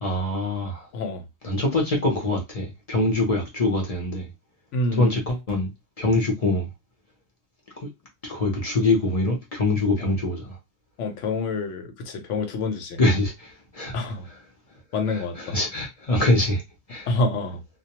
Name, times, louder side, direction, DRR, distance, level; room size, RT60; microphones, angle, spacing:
voice 1, 0.0-0.9 1.4-4.3 5.0-5.7 6.0-6.7 7.8-7.9 8.2-10.6 13.0-14.0 15.4-16.6 16.9-17.1, left 2 dB, 40° left, 0.6 m, -24 dB
voice 2, 4.7-5.2 11.0-13.0 13.9-14.3 14.9-15.6 17.1-17.6, left 2 dB, 75° left, 0.9 m, -27 dB
2.2 x 2.1 x 2.8 m
omnidirectional pair, 1.3 m